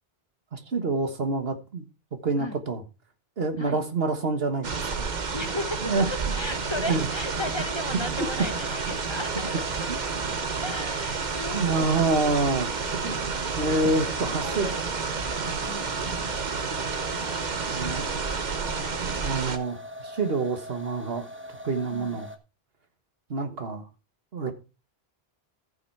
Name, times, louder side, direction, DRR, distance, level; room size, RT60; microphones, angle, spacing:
voice 1, 0.5-1.9 2.2-2.8 3.4-5.2 5.8-6.1 6.8-7.1 11.5-12.7 13.0-14.7 17.7-18.2 19.0-21.3 21.6-22.3 23.3-23.8 24.3-24.5, right 3 dB, 70° right, 1.7 m, -27 dB
sound 1, 4.6-19.6, right 5 dB, 50° right, 1.1 m, -30 dB
voice 2, 5.3-5.8 6.3-10.3 10.6-12.4 14.2-14.8 15.6-15.9 21.8-22.2, left 1 dB, 30° left, 1.0 m, -36 dB
sound 2, 6.5-22.4, left 1 dB, 10° right, 1.1 m, -42 dB
14.0 x 5.9 x 4.7 m
omnidirectional pair, 1.0 m